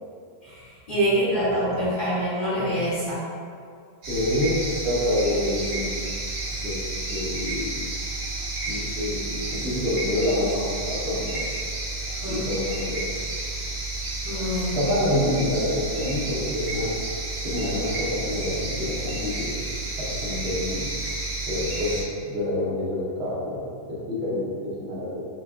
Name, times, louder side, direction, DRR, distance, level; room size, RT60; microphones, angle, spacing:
voice 1, 0.4-3.3 12.2-12.5 14.2-14.8, equal, 40° left, -11 dB, 0.9 m, -25 dB
sound 1, 4.0-22.0, right 2 dB, 80° right, 1.5 m, -31 dB
voice 2, 4.1-4.6 4.8-6.0 6.6-7.7 8.7-11.4 12.3-13.1 14.7-16.9 17.4-19.6 19.9-20.8 21.5-22.0 22.3-23.6 23.9-25.3, left 1 dB, 50° right, -7 dB, 1.1 m, -27 dB
6.1 x 2.4 x 2.3 m, 2.3 s
omnidirectional pair, 1.7 m